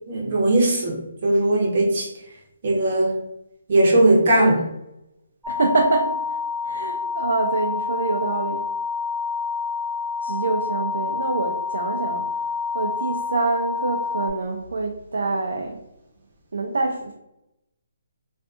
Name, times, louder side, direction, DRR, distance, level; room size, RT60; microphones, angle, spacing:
voice 1, 0.1-2.1 2.6-3.2 3.7-4.6, right 1 dB, 40° right, -2 dB, 0.7 m, -19 dB
sound 1, 5.4-14.3, left 5 dB, 5° right, 0.4 m, -28 dB
voice 2, 5.5-6.4 6.6-8.6 10.2-12.2 12.7-15.8 16.5-17.1, right 3 dB, 75° right, 0 dB, 0.4 m, -25 dB
2.5 x 2.4 x 2.4 m, 0.85 s
hypercardioid pair, 170°, 0 cm